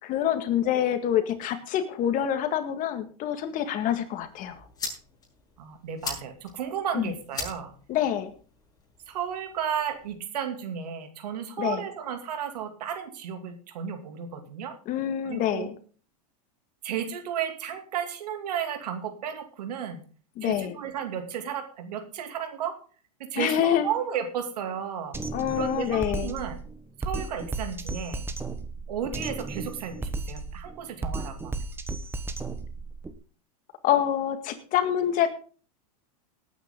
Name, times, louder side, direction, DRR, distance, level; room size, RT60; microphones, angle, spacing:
voice 1, 0.0-4.6 6.9-7.1 7.9-8.3 11.6-11.8 14.9-15.7 20.4-20.8 23.4-23.9 25.3-26.3 33.8-35.3, left 10 dB, 40° left, 9 dB, 2.0 m, -26 dB
sound 1, 4.2-10.2, left 4 dB, 20° left, 7.1 m, -41 dB
voice 2, 5.6-7.7 9.1-14.8 15.2-15.7 16.8-20.0 20.4-22.8 23.2-25.2 25.5-26.6 27.0-28.3 28.9-31.6, right 8 dB, 80° right, 7 dB, 2.7 m, -33 dB
Drum kit, 25.1-33.1, right 3 dB, 10° right, 1.3 m, -34 dB
18.5 x 9.3 x 3.8 m, 0.40 s
hypercardioid pair, 120°, 20 cm